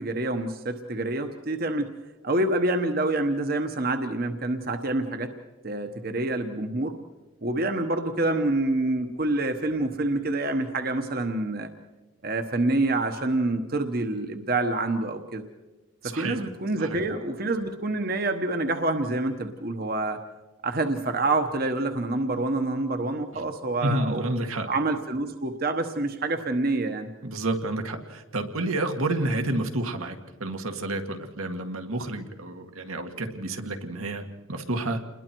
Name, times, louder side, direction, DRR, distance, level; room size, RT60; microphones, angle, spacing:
voice 1, 0.0-1.9 2.2-5.3 5.6-6.9 7.4-11.7 12.2-15.4 16.0-20.2 20.6-24.3 24.6-27.1, right 2 dB, 45° right, 6 dB, 1.1 m, -27 dB
voice 2, 16.0-16.4 16.8-17.0 23.8-24.7 27.2-34.2 34.5-35.0, right 2 dB, 85° right, 5 dB, 2.0 m, -30 dB
29.0 x 21.5 x 4.6 m, 1.1 s
head